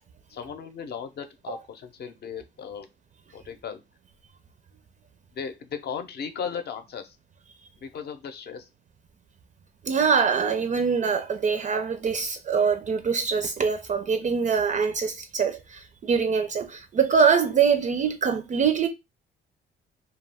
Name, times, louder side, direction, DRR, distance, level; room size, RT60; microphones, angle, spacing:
voice 1, 0.3-2.9 3.3-3.8 5.3-7.2 7.8-8.7, left 7 dB, 55° left, 0.6 m, -36 dB
voice 2, 9.8-18.9, right 6 dB, 40° right, 0.4 m, -24 dB
2.3 x 2.2 x 3.3 m
cardioid pair, 90°, 20 cm